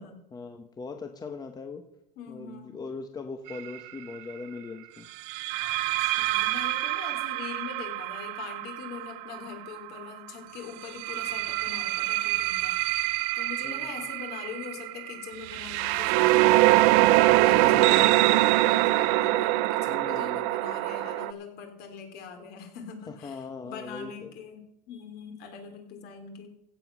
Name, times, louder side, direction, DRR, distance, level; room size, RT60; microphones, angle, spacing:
voice 1, 0.3-1.8 2.3-5.1 13.6-14.0 17.6-18.1 19.9-20.5 23.1-24.3, left 4 dB, 20° left, 6 dB, 1.0 m, -40 dB
voice 2, 2.2-2.8 6.0-12.8 13.3-16.7 17.2-26.5, left 6 dB, 55° left, 5 dB, 3.5 m, -42 dB
sound 1, 3.5-3.8 5.3-10.0 10.8-21.3, right 18 dB, 70° right, 0.6 m, -24 dB
15.5 x 7.7 x 6.1 m, 0.82 s
supercardioid pair, 125°, 19 cm